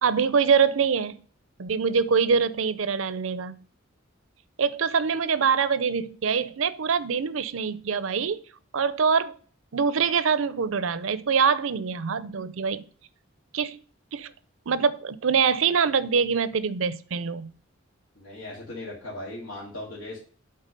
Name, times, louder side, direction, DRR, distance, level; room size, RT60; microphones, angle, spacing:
voice 1, 0.0-1.2 1.6-3.5 4.6-8.4 8.7-9.3 9.7-12.8 13.5-13.8 14.1-14.3 14.7-17.5, right 6 dB, 70° right, 0.6 m, -24 dB
voice 2, 18.2-20.2, left 2 dB, 85° left, 2.5 m, -38 dB
8.2 x 3.9 x 5.2 m
head